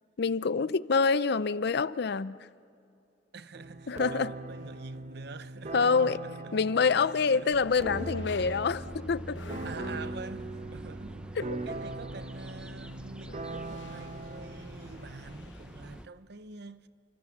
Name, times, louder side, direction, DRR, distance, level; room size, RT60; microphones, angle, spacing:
voice 1, 0.2-2.4 3.9-4.3 5.7-6.2 6.5-9.4 11.4-11.6, left 5 dB, 65° left, 0.5 m, -26 dB
voice 2, 3.3-6.3 7.3-7.5 9.6-11.4 11.6-16.9, right 4 dB, 65° right, 0.8 m, -46 dB
sound 1, 3.5-15.4, right 2 dB, 40° right, 0.9 m, -40 dB
sound 2, 3.6-16.0, left 4 dB, 85° left, 1.0 m, -54 dB
sound 3, 7.5-16.1, equal, 5° right, 0.7 m, -48 dB
30.0 x 25.0 x 7.3 m
head